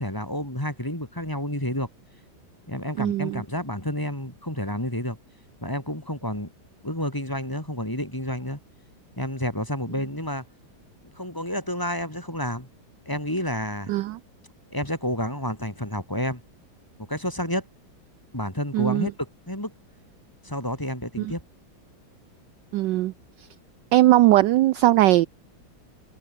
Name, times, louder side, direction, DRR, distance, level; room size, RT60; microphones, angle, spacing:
voice 1, 0.0-1.9 2.7-5.2 5.6-6.5 6.8-8.6 9.2-10.4 11.1-12.7 13.1-13.9 14.7-16.4 17.0-17.6 18.3-19.7 20.4-21.4, left 1 dB, 10° left, 3.9 m, -30 dB
voice 2, 3.0-3.4 13.9-14.2 18.7-19.1 21.2-21.3 22.7-23.1 23.9-25.3, right 15 dB, 70° right, 1.1 m, -19 dB
omnidirectional pair, 2.2 m